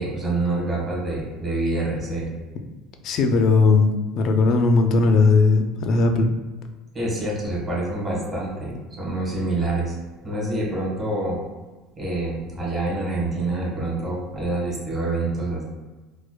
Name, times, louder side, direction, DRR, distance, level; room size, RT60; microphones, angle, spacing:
voice 1, 0.0-2.3 6.9-10.0 10.2-11.4 12.0-15.6, right 2 dB, 20° right, -4 dB, 1.2 m, -26 dB
voice 2, 3.0-3.9 4.1-6.3, left 4 dB, 45° left, 6 dB, 0.3 m, -17 dB
4.6 x 2.1 x 2.2 m, 1.2 s
cardioid pair, 145°, 0 cm